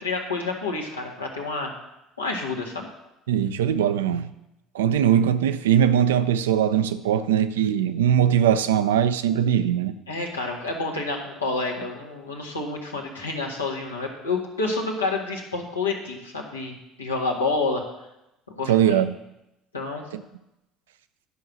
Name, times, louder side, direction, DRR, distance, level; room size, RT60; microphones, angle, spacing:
voice 1, 0.0-1.7 2.2-2.9 10.1-17.8 18.5-19.0 19.7-20.0, left 3 dB, 85° left, 0 dB, 1.6 m, -29 dB
voice 2, 3.3-4.3 4.7-9.9 18.7-19.1 20.1-20.2, right 9 dB, 75° right, 11 dB, 0.5 m, -21 dB
11.0 x 5.6 x 6.2 m, 0.90 s
figure-of-eight pair, 60°, 0 cm